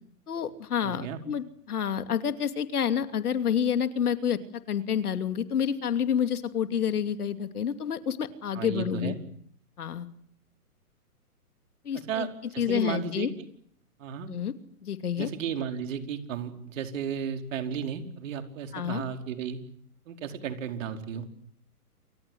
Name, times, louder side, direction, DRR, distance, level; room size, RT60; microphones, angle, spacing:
voice 1, 0.3-4.4 4.7-9.2 9.8-10.1 11.8-12.3 12.6-13.3 14.3-14.5 14.8-15.3 18.7-19.0, left 8 dB, 75° left, 10 dB, 2.7 m, -28 dB
voice 2, 0.8-1.2 8.5-9.2 11.9-13.5 14.0-14.3 15.2-19.6 20.1-21.2, right 7 dB, 55° right, 6 dB, 5.0 m, -34 dB
29.0 x 25.5 x 7.9 m, 0.64 s
hypercardioid pair, 135°, 46 cm